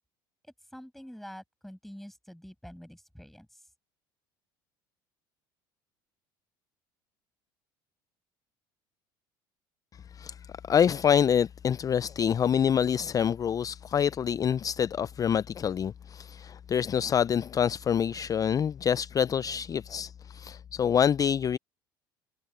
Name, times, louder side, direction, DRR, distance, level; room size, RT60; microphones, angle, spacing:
voice 1, 0.4-3.6, equal, ahead, 7.2 m, -47 dB
voice 2, 10.7-21.6, left 8 dB, 30° left, 0.4 m, -26 dB
hypercardioid pair, 75°, 11 cm